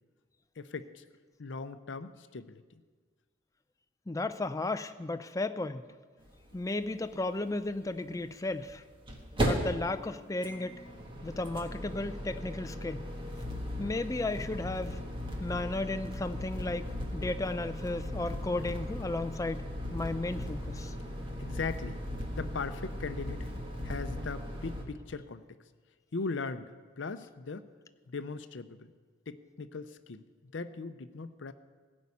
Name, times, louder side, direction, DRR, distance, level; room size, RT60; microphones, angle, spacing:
voice 1, 0.6-1.0 1.4-2.6 6.5-6.6 21.4-22.0 22.3-23.5 23.8-25.4 26.1-26.7 27.0-27.7 28.1-28.9 29.3-30.2 30.5-31.5, left 4 dB, 65° left, 11 dB, 0.6 m, -39 dB
voice 2, 4.1-5.8 6.5-8.8 9.4-10.8 11.2-13.1 13.8-15.0 15.4-16.9 17.1-20.9, left 2 dB, 15° left, 10 dB, 0.4 m, -34 dB
sound 1, 6.3-6.4 6.5-6.6 8.5-24.8, equal, 25° right, 1.4 m, -37 dB
16.0 x 5.4 x 8.5 m, 1.5 s
head